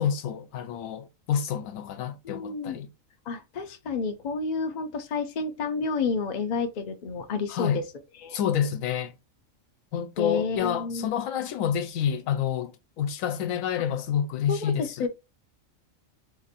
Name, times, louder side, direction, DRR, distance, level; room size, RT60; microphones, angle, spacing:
voice 1, 0.0-2.9 7.5-7.8 8.3-9.1 9.9-15.1, left 8 dB, 80° left, 1.0 m, -28 dB
voice 2, 2.2-2.8 3.3-7.8 8.2-8.4 10.2-11.1 14.5-15.1, left 4 dB, 55° left, 0.5 m, -30 dB
2.9 x 2.5 x 4.0 m
omnidirectional pair, 1.4 m